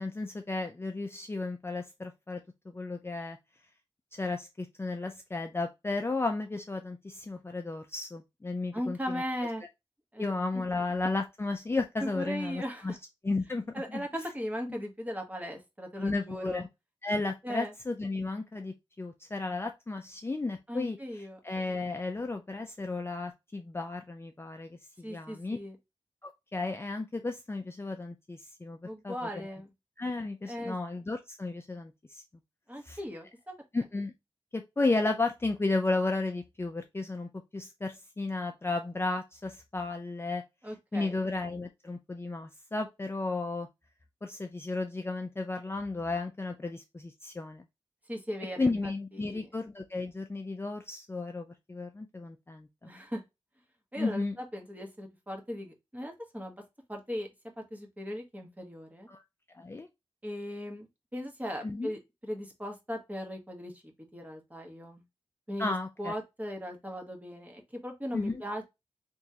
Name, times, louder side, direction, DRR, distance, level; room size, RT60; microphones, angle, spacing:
voice 1, 0.0-2.4 2.7-3.4 4.1-9.2 10.2-13.0 13.2-13.6 13.9-14.0 14.7-14.8 16.0-16.7 17.0-21.0 21.4-25.6 26.2-28.8 29.0-29.5 30.0-32.2 32.8-33.0 33.7-34.1 34.5-40.4 40.9-43.7 44.2-47.6 48.6-52.9 54.0-54.4 59.1-59.2 59.5-59.9 61.6-61.9 65.6-66.1 68.1-68.4, left 3 dB, 25° left, 0.4 m, -33 dB
voice 2, 8.7-9.6 10.1-10.3 12.0-13.0 13.7-16.6 17.4-17.7 20.7-21.4 25.0-25.8 28.8-29.7 30.5-30.8 32.7-33.5 40.6-41.3 48.1-49.5 52.8-53.2 53.9-56.6 56.9-57.3 57.6-59.1 60.2-65.0 65.5-68.6, equal, 15° right, 1.1 m, -38 dB
3.5 x 3.0 x 2.7 m
wide cardioid pair, 90°, 10 cm